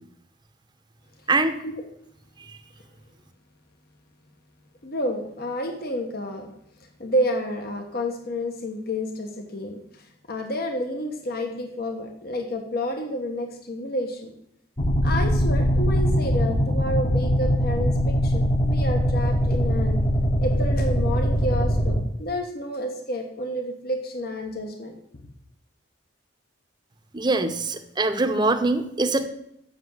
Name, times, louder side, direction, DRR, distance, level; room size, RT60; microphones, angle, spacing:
voice 1, 4.8-6.5 6.8-14.3 15.0-20.0 20.4-25.2, equal, 55° left, 4 dB, 1.2 m, -30 dB
sound 1, 14.8-22.0, equal, 30° left, 1.2 m, -22 dB
voice 2, 27.1-29.3, right 2 dB, 25° right, 7 dB, 0.9 m, -23 dB
8.0 x 6.1 x 7.8 m, 0.74 s
head